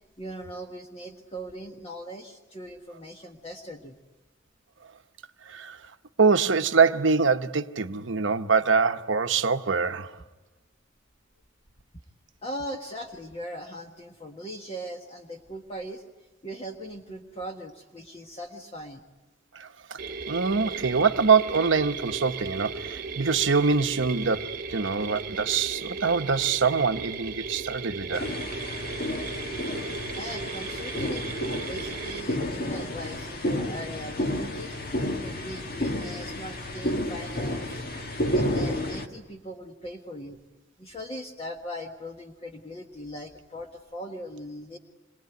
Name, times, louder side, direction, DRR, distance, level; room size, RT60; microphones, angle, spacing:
voice 1, 0.2-4.0 12.4-16.0 16.4-19.0 29.7-29.8 30.2-34.8 35.2-37.9 38.3-40.4 40.8-44.8, equal, 30° left, 1.6 m, -40 dB
voice 2, 5.5-5.8 6.2-10.1 19.5-20.0 20.3-28.3, right 5 dB, 65° right, 0.9 m, -24 dB
sound 1, 20.0-32.2, right 5 dB, 45° right, 1.2 m, -36 dB
sound 2, 28.1-39.1, left 1 dB, 50° left, 1.9 m, -31 dB
27.0 x 23.0 x 9.3 m
head